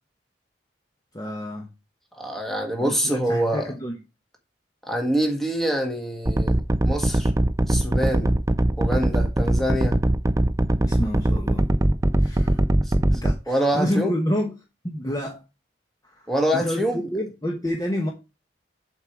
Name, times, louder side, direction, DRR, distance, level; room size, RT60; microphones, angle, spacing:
voice 1, 1.1-1.7 2.8-4.0 10.8-11.7 12.2-12.6 13.1-14.5 14.8-15.4 16.0-16.3 16.5-18.1, equal, 20° left, 1.1 m, -28 dB
voice 2, 2.2-3.7 4.9-7.3 7.7-8.3 8.8-10.0 13.5-14.1 16.3-17.0, equal, ahead, 1.6 m, -25 dB
sound 1, 6.3-13.3, right 1 dB, 20° right, 0.4 m, -20 dB
7.4 x 4.7 x 6.0 m
head